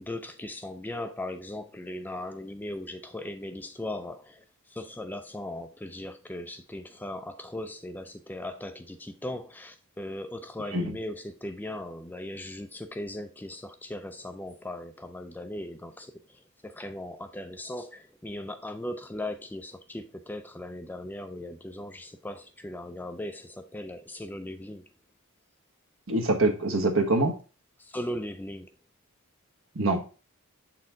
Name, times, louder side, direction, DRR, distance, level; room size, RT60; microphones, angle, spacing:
voice 1, 0.0-24.8 27.8-28.7, left 1 dB, 10° left, 0.4 m, -38 dB
voice 2, 26.1-27.3 29.7-30.1, right 2 dB, 65° right, 1.2 m, -24 dB
7.3 x 4.3 x 3.7 m
head